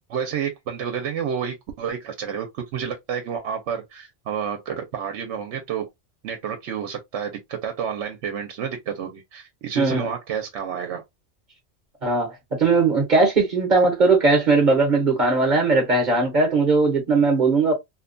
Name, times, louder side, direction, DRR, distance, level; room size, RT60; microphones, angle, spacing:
voice 1, 0.1-5.9 6.2-11.0, right 7 dB, 80° right, 0.9 m, -30 dB
voice 2, 9.8-10.1 12.0-12.3 12.6-17.7, right 3 dB, 45° right, 0.8 m, -19 dB
2.7 x 2.2 x 2.5 m
omnidirectional pair, 1.2 m